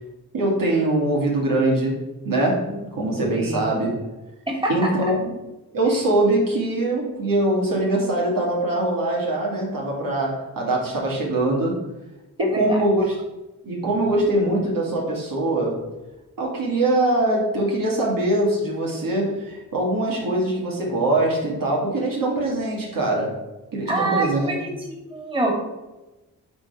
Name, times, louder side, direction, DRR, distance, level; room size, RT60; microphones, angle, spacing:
voice 1, 0.3-4.0 4.7-5.3 5.7-11.9 12.4-13.1 13.6-15.8 16.4-23.4 23.7-24.6, right 1 dB, 70° right, -3 dB, 2.5 m, -22 dB
voice 2, 3.3-3.8 4.5-4.9 12.4-12.8 23.9-24.7 25.1-25.5, right 2 dB, 15° right, 0 dB, 2.4 m, -25 dB
8.5 x 3.7 x 6.0 m, 1.0 s
cardioid pair, 60°, 34 cm